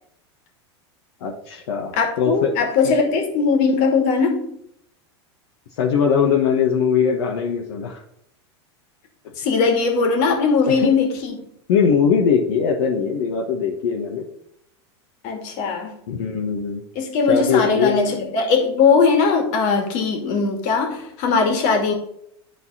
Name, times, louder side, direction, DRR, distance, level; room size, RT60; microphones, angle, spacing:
voice 1, 1.2-1.9 2.2-2.5 2.8-3.0 5.8-8.0 10.7-10.9 11.7-14.3 16.1-16.8 17.3-18.2, left 6 dB, 70° left, -2 dB, 1.4 m, -21 dB
voice 2, 1.9-4.6 9.4-11.5 15.2-16.0 17.0-21.9, left 5 dB, 55° left, 3 dB, 2.3 m, -19 dB
11.0 x 4.1 x 4.2 m, 0.72 s
hypercardioid pair, 105°, 15 cm